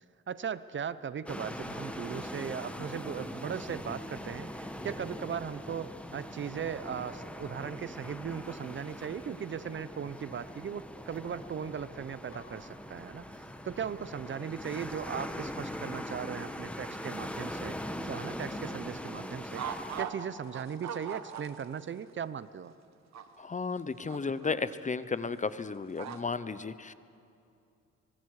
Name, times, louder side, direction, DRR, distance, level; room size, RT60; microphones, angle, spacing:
voice 1, 0.0-19.6 20.0-22.7, right 7 dB, 40° right, 16 dB, 0.6 m, -38 dB
sound 1, 1.3-20.0, equal, 5° left, 1.3 m, -41 dB
sound 2, 12.3-13.6 14.2-16.6 17.0-18.8, left 3 dB, 45° left, 3.4 m, -59 dB
sound 3, 19.5-20.3 20.5-21.8 22.1-22.2 23.1-23.2 24.1-24.5 26.0-26.2, right 8 dB, 60° right, 1.4 m, -38 dB
voice 2, 23.4-26.9, left 4 dB, 25° left, 14 dB, 0.8 m, -34 dB
25.0 x 22.5 x 4.9 m, 2.5 s
cardioid pair, 90°, 30 cm